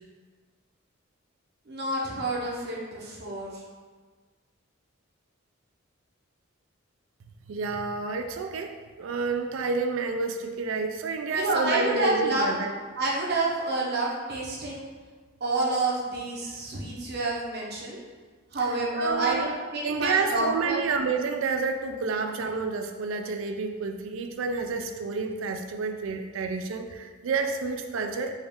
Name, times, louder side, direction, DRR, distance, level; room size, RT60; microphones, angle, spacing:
voice 1, 1.7-3.6 11.3-12.5 13.0-14.8 15.4-18.0 18.5-20.8, right 2 dB, 50° right, -3 dB, 0.8 m, -28 dB
voice 2, 7.5-12.7 18.9-19.5 19.8-28.3, right 4 dB, 80° right, 6 dB, 0.4 m, -29 dB
4.0 x 2.4 x 3.5 m, 1.4 s
head